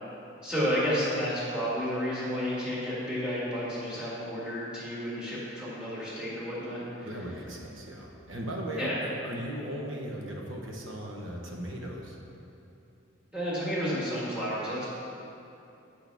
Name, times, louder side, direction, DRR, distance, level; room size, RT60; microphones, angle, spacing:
voice 1, 0.4-7.1 8.8-9.0 13.3-14.9, equal, 5° right, -9 dB, 1.7 m, -31 dB
voice 2, 7.0-12.2, right 1 dB, 85° right, 0 dB, 1.0 m, -37 dB
7.8 x 6.1 x 3.4 m, 2.8 s
head